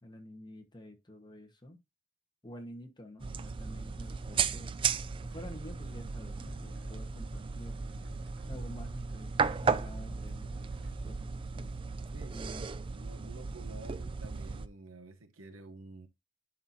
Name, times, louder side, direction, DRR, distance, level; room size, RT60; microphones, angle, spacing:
voice 1, 0.0-1.8 2.4-4.8 5.2-7.8 8.4-9.3 9.6-11.7 12.3-12.6, left 1 dB, 20° left, 1.3 m, -49 dB
sound 1, 3.2-14.7, right 5 dB, 25° right, 0.3 m, -35 dB
sound 2, 5.3-11.1, equal, 65° right, 2.0 m, -52 dB
voice 2, 12.1-12.5 12.9-16.1, right 3 dB, 85° right, 1.0 m, -50 dB
11.0 x 4.3 x 2.8 m
head